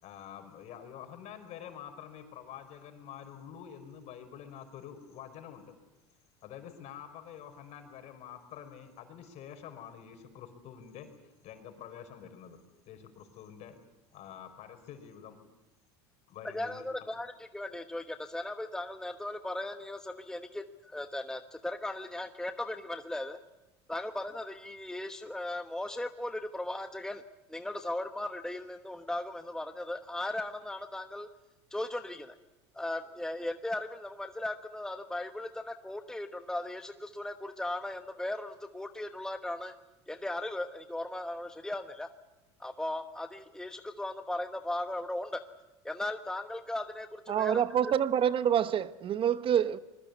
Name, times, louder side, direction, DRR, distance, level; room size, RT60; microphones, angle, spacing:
voice 1, 0.0-5.7 6.4-11.1 11.4-12.6 12.8-13.8 14.1-15.4 16.3-16.9, left 9 dB, 55° left, 5.1 m, -47 dB
voice 2, 16.5-23.4 23.9-27.2 27.5-31.3 31.7-32.3 32.7-39.8 40.1-42.1 42.6-45.4 45.8-47.9, left 1 dB, 5° left, 1.1 m, -37 dB
voice 3, 47.3-49.8, right 9 dB, 40° right, 1.0 m, -27 dB
25.5 x 21.5 x 8.3 m
hypercardioid pair, 95°, 14 cm